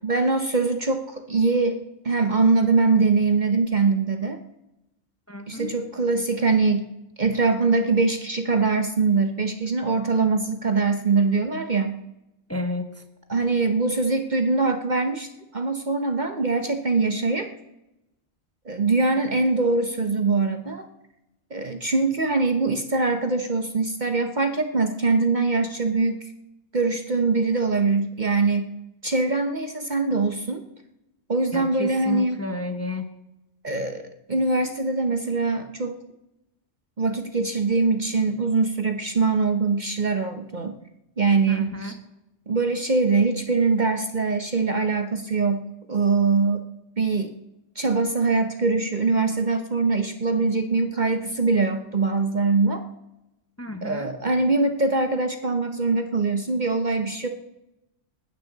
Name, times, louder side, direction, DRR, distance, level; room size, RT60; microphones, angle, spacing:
voice 1, 0.0-1.8 2.0-4.4 5.5-6.9 7.2-12.0 13.3-17.5 18.7-20.9 21.5-26.2 26.7-28.7 29.0-30.6 31.3-32.4 33.6-36.0 37.0-40.8 41.2-42.0 42.5-46.6 47.0-47.3 47.8-52.8 53.8-57.3, right 3 dB, 40° right, 6 dB, 0.9 m, -23 dB
voice 2, 5.3-5.7 12.5-13.0 31.5-33.1 41.5-42.0 53.6-54.1, left 1 dB, 15° left, 6 dB, 0.9 m, -31 dB
19.0 x 15.5 x 4.0 m, 0.93 s
omnidirectional pair, 1.3 m